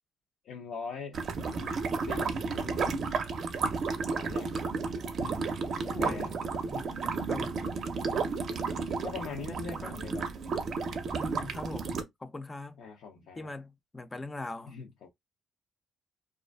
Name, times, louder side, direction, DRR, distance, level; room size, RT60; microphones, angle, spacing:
voice 1, 0.4-3.0 4.2-4.5 5.2-6.3 8.0-8.4 9.0-10.3 12.8-13.5 14.7-15.1, left 5 dB, 85° left, 0.5 m, -43 dB
sound 1, 1.1-12.0, right 4 dB, 60° right, 0.5 m, -32 dB
voice 2, 5.9-6.3 6.6-7.5 9.8-10.0 11.2-12.8 13.4-14.7, left 2 dB, 20° left, 0.3 m, -41 dB
2.4 x 2.4 x 2.2 m
cardioid pair, 90°, 0 cm